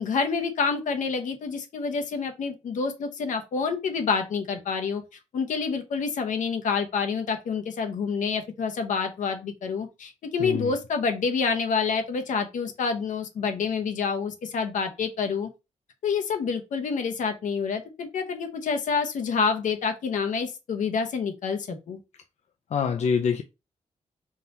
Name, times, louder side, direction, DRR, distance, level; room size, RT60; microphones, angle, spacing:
voice 1, 0.0-5.0 5.3-15.5 16.0-22.0, left 5 dB, 80° left, 0.9 m, -28 dB
voice 2, 10.4-10.7 22.7-23.4, left 6 dB, 60° left, 0.5 m, -25 dB
3.8 x 2.8 x 4.2 m
cardioid pair, 90°, 13 cm